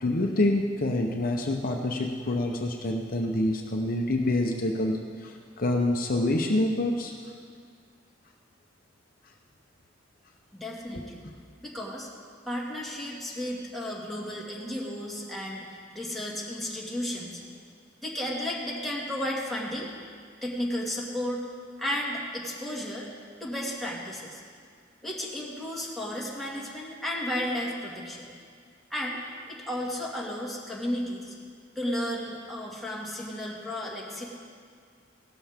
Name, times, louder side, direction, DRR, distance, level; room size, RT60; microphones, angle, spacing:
voice 1, 0.0-7.2 10.9-11.1, left 1 dB, 50° left, 2 dB, 0.8 m, -27 dB
voice 2, 10.5-11.2 11.6-12.1 12.5-17.4 18.0-19.9 20.4-21.4 21.8-23.1 23.4-24.4 25.0-28.3 28.9-29.2 29.5-31.3 31.8-34.3, left 1 dB, ahead, -4 dB, 2.1 m, -33 dB
17.0 x 13.0 x 3.6 m, 2.1 s
head